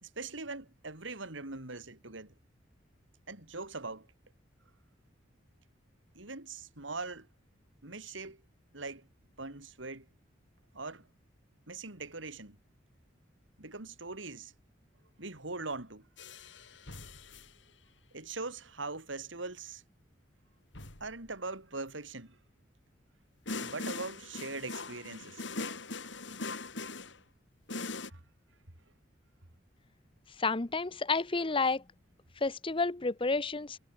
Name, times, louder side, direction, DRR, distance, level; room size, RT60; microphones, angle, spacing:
voice 1, 0.0-2.3 3.3-4.1 6.2-7.3 7.8-8.4 8.7-9.1 9.4-10.1 10.7-11.1 11.7-12.6 13.6-14.5 15.2-16.1 18.1-19.8 21.0-22.4 23.6-25.4 28.0-28.2, right 3 dB, 80° right, 3.5 m, -41 dB
sound 1, 16.2-17.5 20.7-21.2 23.5-27.2 27.7-28.1, left 3 dB, 70° left, 4.6 m, -41 dB
voice 2, 30.4-31.8 32.4-33.8, left 3 dB, 30° left, 0.8 m, -30 dB
head